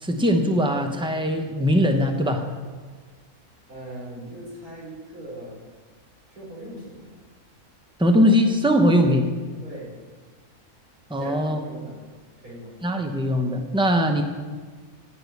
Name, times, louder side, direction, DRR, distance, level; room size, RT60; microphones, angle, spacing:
voice 1, 0.0-2.5 8.0-9.3 11.1-11.6 12.8-14.2, equal, 5° right, 4 dB, 0.5 m, -21 dB
voice 2, 3.7-5.6 6.3-7.1 9.6-9.9 11.2-12.0 12.4-12.7, right 1 dB, 70° right, -6 dB, 4.4 m, -39 dB
8.7 x 6.8 x 8.1 m, 1.4 s
omnidirectional pair, 1.6 m